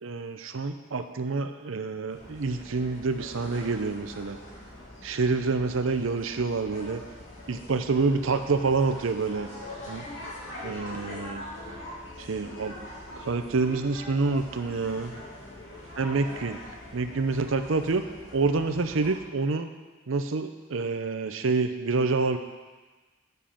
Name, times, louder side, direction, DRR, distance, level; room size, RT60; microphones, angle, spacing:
voice 1, 0.0-4.4 5.0-7.0 7.5-9.5 9.9-10.1 10.6-11.4 12.2-12.7 13.2-15.1 16.0-16.6 16.9-18.0 18.3-19.7 20.1-22.4, right 4 dB, 80° right, 8 dB, 0.6 m, -27 dB
sound 1, 2.1-19.1, left 1 dB, 70° left, 2.8 m, -43 dB
7.4 x 6.7 x 5.8 m, 1.3 s
head